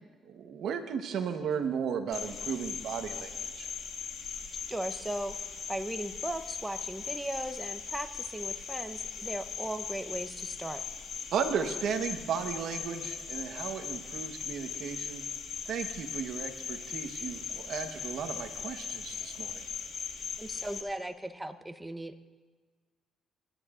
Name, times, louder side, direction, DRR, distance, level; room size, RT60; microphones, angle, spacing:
voice 1, 0.2-3.3 3.6-3.7 11.3-15.2 15.7-19.6, right 7 dB, 75° right, 6 dB, 1.1 m, -35 dB
Cricket, 2.1-20.8, left 6 dB, 65° left, 1.6 m, -39 dB
voice 2, 4.7-5.4 5.7-10.8 20.4-22.3, right 1 dB, 10° right, 9 dB, 0.8 m, -37 dB
25.5 x 11.0 x 2.5 m, 1.4 s
cardioid pair, 90°, 0 cm